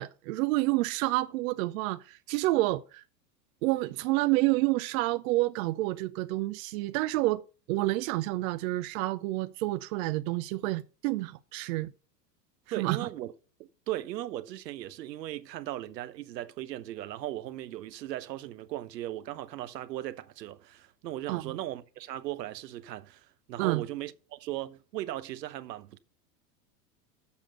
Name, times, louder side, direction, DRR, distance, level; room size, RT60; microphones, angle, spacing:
voice 1, 0.0-3.0 3.6-7.4 7.7-11.9 12.8-13.0 21.3-21.5 23.6-23.8, right 19 dB, 55° right, 0.6 m, -29 dB
voice 2, 12.7-13.3 13.6-26.0, right 14 dB, 80° right, 1.0 m, -38 dB
7.2 x 6.0 x 6.5 m
hypercardioid pair, 110°, 49 cm